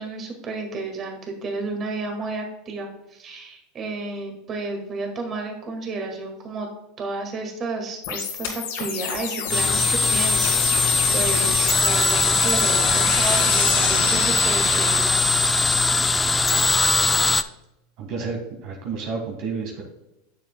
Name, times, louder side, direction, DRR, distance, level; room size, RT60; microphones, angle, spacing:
voice 1, 0.0-6.7 7.0-15.5, right 3 dB, 35° right, 2 dB, 1.9 m, -31 dB
sound 1, 8.0-15.0, left 7 dB, 75° left, 2.0 m, -28 dB
sound 2, 9.5-17.4, left 3 dB, 15° left, 0.4 m, -20 dB
voice 2, 18.0-19.8, right 4 dB, 60° right, 1 dB, 1.6 m, -30 dB
9.7 x 7.0 x 2.2 m, 0.90 s
hypercardioid pair, 100°, 0 cm